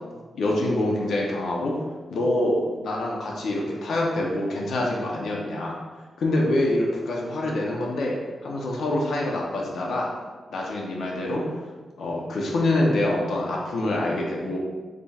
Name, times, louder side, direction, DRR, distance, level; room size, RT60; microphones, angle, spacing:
voice 1, 0.3-1.7 2.1-5.8 6.2-8.2 8.4-10.1 10.5-11.4 12.0-14.6, left 1 dB, 80° left, -2 dB, 0.8 m, -25 dB
5.0 x 4.1 x 2.4 m, 1.4 s
cardioid pair, 100°, 0 cm